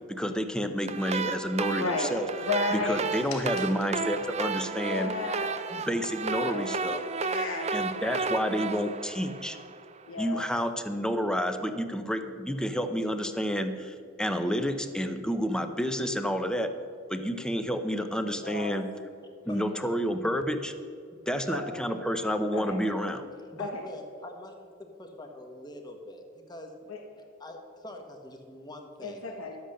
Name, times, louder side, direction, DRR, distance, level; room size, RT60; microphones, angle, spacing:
voice 1, 0.1-2.3 2.7-5.1 5.7-7.0 7.7-9.6 10.2-16.7 17.1-18.9 19.4-20.7 21.3-23.2, equal, 5° left, 8 dB, 0.7 m, -30 dB
sound 1, 0.9-10.0, right 4 dB, 35° right, 0.5 m, -33 dB
voice 2, 1.7-3.7 4.8-5.6 6.2-6.7 7.1-8.2 8.5-8.7 10.1-10.4 18.4-18.7 21.5-21.7 22.5-22.8 23.6-23.8 26.9-27.0 29.0-29.5, left 3 dB, 85° left, 2 dB, 1.2 m, -34 dB
voice 3, 23.5-24.5 25.0-26.7 27.1-29.2, left 1 dB, 20° left, 4 dB, 1.3 m, -44 dB
11.5 x 7.9 x 6.5 m, 2.3 s
head